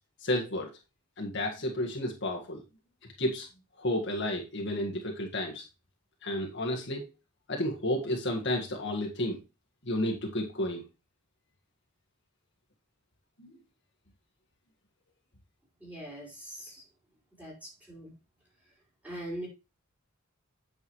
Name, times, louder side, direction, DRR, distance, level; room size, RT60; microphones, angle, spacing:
voice 1, 0.2-0.7 1.2-2.6 3.2-3.5 3.8-5.6 6.2-7.1 7.5-9.4 9.8-10.8 13.4-13.6, left 1 dB, 55° left, 0 dB, 1.7 m, -31 dB
voice 2, 15.8-16.8 17.4-18.1 19.0-19.5, right 1 dB, 5° right, -4 dB, 4.4 m, -41 dB
8.7 x 6.3 x 3.1 m, 0.27 s
head